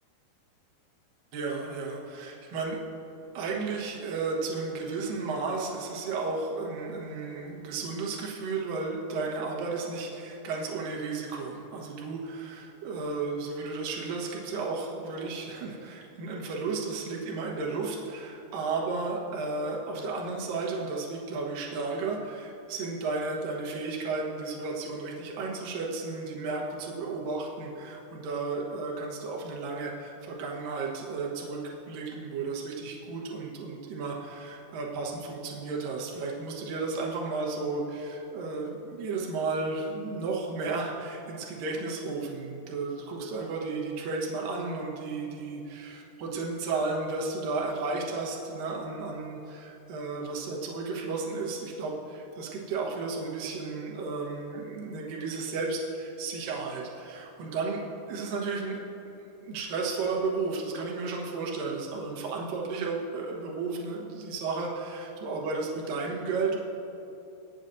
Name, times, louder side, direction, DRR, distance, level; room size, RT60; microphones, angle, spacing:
voice 1, 1.3-2.8 3.3-31.6 31.9-57.8 58.1-58.8 59.2-66.6, right 3 dB, 65° right, -2 dB, 2.2 m, -33 dB
23.5 x 9.0 x 2.7 m, 2.9 s
omnidirectional pair, 5.7 m